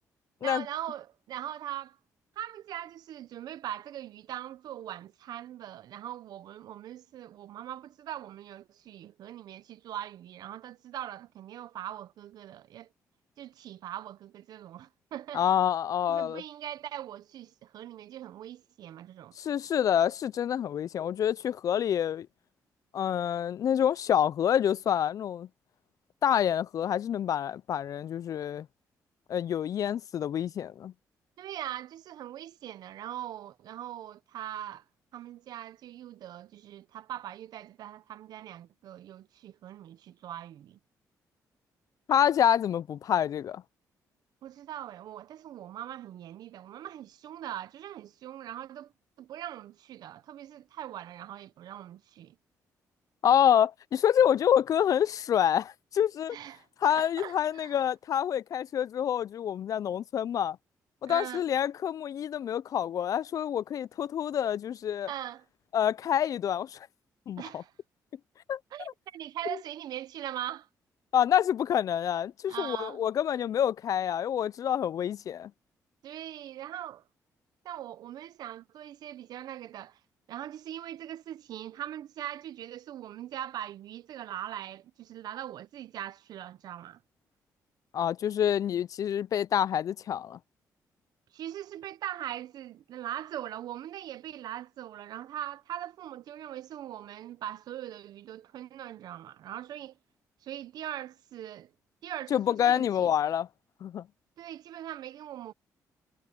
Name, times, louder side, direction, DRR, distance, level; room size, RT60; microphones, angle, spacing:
voice 1, 0.4-2.0 2.4-12.9 13.4-15.4 16.1-19.3 31.4-34.8 35.1-40.8 44.4-48.9 49.2-52.4 56.3-57.8 61.0-61.5 65.1-65.4 67.4-67.7 68.7-70.7 72.5-73.0 76.0-77.0 77.6-80.0 80.3-87.0 91.3-100.0 100.4-101.7 102.0-103.1 104.4-105.5, right 11 dB, 75° right, 0.8 m, -41 dB
voice 2, 15.3-16.4 19.4-22.3 22.9-25.5 26.2-28.7 29.3-30.9 42.1-43.6 53.2-56.4 56.8-60.6 61.0-65.1 65.7-66.9 67.3-67.6 68.5-68.9 71.1-75.5 87.9-90.4 102.3-103.5 103.8-104.1, left 9 dB, 55° left, 0.4 m, -27 dB
cardioid pair, 85°, 7 cm